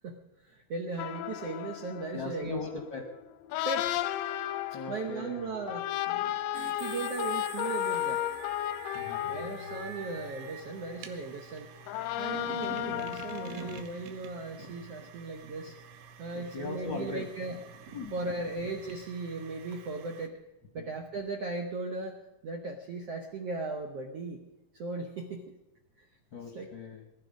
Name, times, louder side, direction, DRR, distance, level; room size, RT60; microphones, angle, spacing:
voice 1, 0.0-2.7 3.6-3.9 4.9-6.4 6.7-8.3 9.3-11.7 12.2-15.7 16.2-17.6 18.1-20.4 20.7-24.4 24.7-25.4 26.0-26.1 26.5-26.7, right 3 dB, 70° right, 3 dB, 1.5 m, -37 dB
sound 1, 1.0-11.3 11.8-13.8, left 14 dB, 80° left, 2.1 m, -34 dB
voice 2, 2.1-3.0 4.7-5.5 8.9-9.3 15.6-15.7 16.3-17.2 17.9-18.2 20.8-20.9 26.3-27.1, left 4 dB, 55° left, 2 dB, 1.3 m, -39 dB
sound 2, 6.5-20.3, right 8 dB, 85° right, 3.1 m, -48 dB
Thunder, 9.6-20.3 20.6-20.7, right 3 dB, 35° right, 1.5 m, -53 dB
21.5 x 11.5 x 5.2 m, 0.98 s
omnidirectional pair, 4.4 m